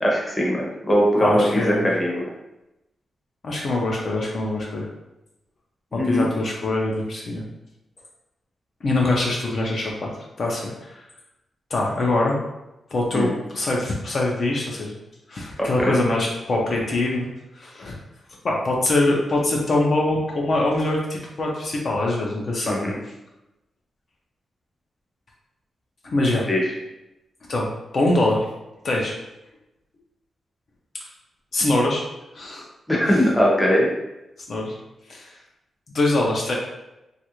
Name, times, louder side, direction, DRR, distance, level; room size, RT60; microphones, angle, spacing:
voice 1, 0.0-2.3 6.0-6.3 13.1-13.3 15.6-15.9 22.6-23.0 26.5-26.6 32.9-33.9, equal, 10° left, -3 dB, 0.7 m, -20 dB
voice 2, 1.2-1.9 3.4-4.9 5.9-7.4 8.8-10.1 10.4-11.0 11.7-12.4 12.9-15.0 15.3-17.3 17.5-18.0 18.4-22.9 26.0-26.4 27.5-27.7 27.9-28.5 28.8-29.2 31.5-32.0 32.3-32.7 34.5-34.7 35.1-35.3 35.9-36.5, left 2 dB, 45° left, -2 dB, 0.5 m, -23 dB
3.1 x 2.4 x 2.9 m, 0.95 s
wide cardioid pair, 145°, 0 cm